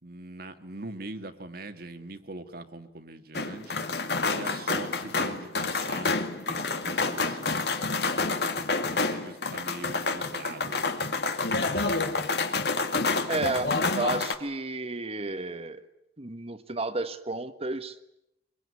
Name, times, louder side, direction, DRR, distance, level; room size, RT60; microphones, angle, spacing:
voice 1, 0.0-3.9 4.3-8.0 8.9-11.0, right 2 dB, 60° right, 8 dB, 2.0 m, -42 dB
sound 1, 3.3-14.3, left 3 dB, 65° left, 2.2 m, -28 dB
voice 2, 13.3-15.9 16.2-18.0, right 2 dB, 35° right, 11 dB, 1.5 m, -32 dB
23.5 x 22.5 x 9.7 m, 0.83 s
head